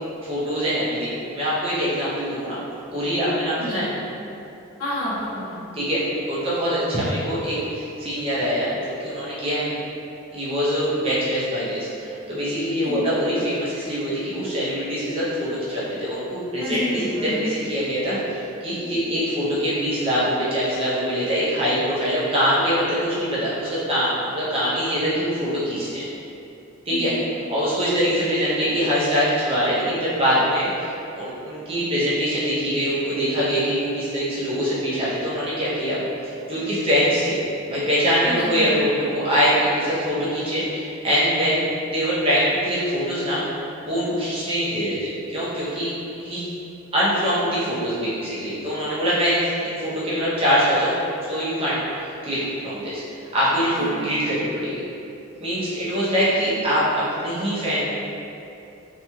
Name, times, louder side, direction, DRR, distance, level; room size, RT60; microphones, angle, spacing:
voice 1, 0.2-2.6 2.9-3.9 5.7-9.8 10.3-17.0 17.4-26.1 26.9-27.1 27.5-37.4 37.7-43.4 43.8-45.9 46.2-46.4 46.9-51.0 51.3-53.0 53.3-54.8 55.4-57.9, equal, 25° right, -10 dB, 0.6 m, -23 dB
voice 2, 3.6-3.9 4.8-5.6 12.8-13.1 16.6-17.5 26.9-27.2 38.2-38.9 53.7-54.1, left 1 dB, 75° left, -9 dB, 0.9 m, -30 dB
2.9 x 2.7 x 2.3 m, 2.8 s
head